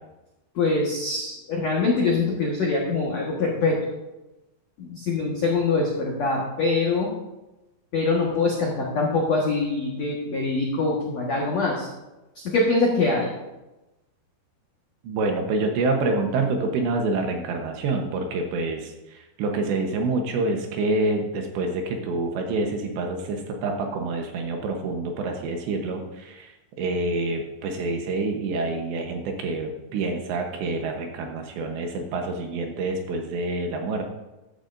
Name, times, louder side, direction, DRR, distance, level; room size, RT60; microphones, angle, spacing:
voice 1, 0.5-3.8 4.8-7.1 7.9-11.9 12.3-13.3, left 3 dB, 90° left, -3 dB, 1.5 m, -24 dB
voice 2, 15.0-26.5 26.8-34.1, right 3 dB, 70° right, 3 dB, 3.0 m, -27 dB
14.5 x 11.5 x 2.6 m, 1.0 s
omnidirectional pair, 5.8 m